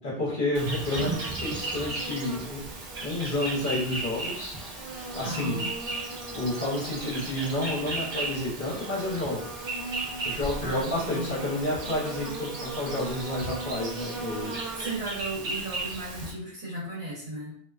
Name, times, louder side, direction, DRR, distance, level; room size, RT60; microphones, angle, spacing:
voice 1, 0.0-2.6 3.0-4.6 5.1-5.6 6.3-9.5 10.2-14.5, left 1 dB, 50° left, -6 dB, 0.9 m, -30 dB
Insect, 0.5-16.3, right 2 dB, 55° right, 0.4 m, -35 dB
voice 2, 5.2-5.7 10.6-11.3 14.7-17.6, right 1 dB, 75° right, -7 dB, 1.2 m, -35 dB
2.5 x 2.1 x 2.3 m, 0.62 s
omnidirectional pair, 1.2 m